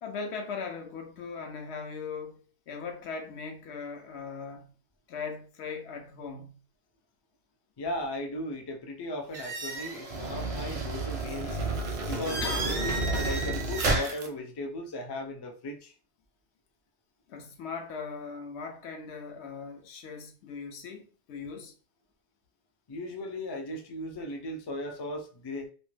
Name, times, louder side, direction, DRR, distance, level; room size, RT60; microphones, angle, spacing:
voice 1, 0.0-4.7 5.1-6.6 12.4-12.8 17.3-21.7, left 5 dB, 80° left, 0.9 m, -39 dB
voice 2, 7.8-11.6 12.1-12.6 12.8-15.9 22.9-25.7, left 1 dB, 45° left, 0.3 m, -37 dB
sound 1, 9.3-14.3, right 2 dB, 45° right, 0.5 m, -31 dB
2.5 x 2.1 x 3.2 m
omnidirectional pair, 1.1 m